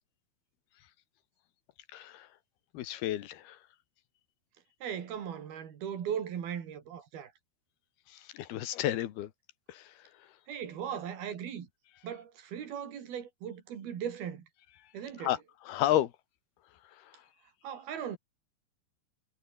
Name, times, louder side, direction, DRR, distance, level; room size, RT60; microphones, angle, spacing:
voice 1, 1.9-2.3 2.7-3.6 8.1-9.3 9.7-9.9 15.2-15.4 15.7-16.1, left 13 dB, 85° left, 3.4 m, -31 dB
voice 2, 4.8-7.3 10.5-11.7 12.0-14.5 14.9-15.3 17.6-18.2, right 8 dB, 75° right, 4.7 m, -38 dB
omnidirectional pair, 4.4 m